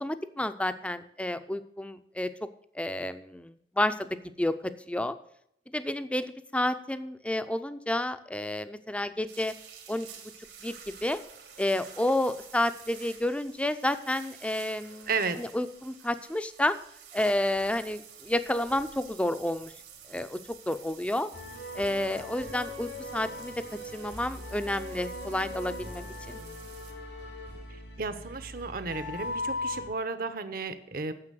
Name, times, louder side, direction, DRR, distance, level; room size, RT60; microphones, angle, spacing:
voice 1, 0.0-2.3 2.7-4.1 4.4-4.6 4.9-5.2 5.7-9.5 9.9-10.1 10.6-11.2 11.6-16.8 17.1-19.7 20.1-21.3 21.7-23.6 23.9-26.4, left 1 dB, 5° left, 11 dB, 0.6 m, -30 dB
sound 1, 9.3-26.9, right 8 dB, 80° right, 2.3 m, -50 dB
voice 2, 15.1-15.4 28.0-31.1, right 4 dB, 55° right, 11 dB, 0.9 m, -33 dB
sound 2, 21.3-29.8, left 2 dB, 90° left, 3.9 m, -39 dB
9.7 x 7.3 x 7.6 m, 0.72 s
head